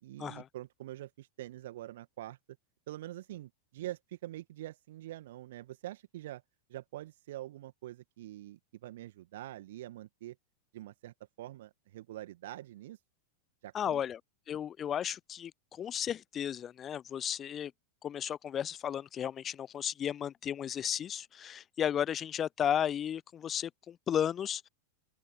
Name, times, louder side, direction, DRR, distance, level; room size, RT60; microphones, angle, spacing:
voice 1, 0.0-2.4 2.9-6.4 6.7-10.4 10.7-13.0 13.6-14.0, right 14 dB, 55° right, 1.9 m, -45 dB
voice 2, 13.7-14.2 14.5-17.7 18.0-24.7, left 9 dB, 25° left, 0.6 m, -34 dB
open air
figure-of-eight pair, 90°, 0 cm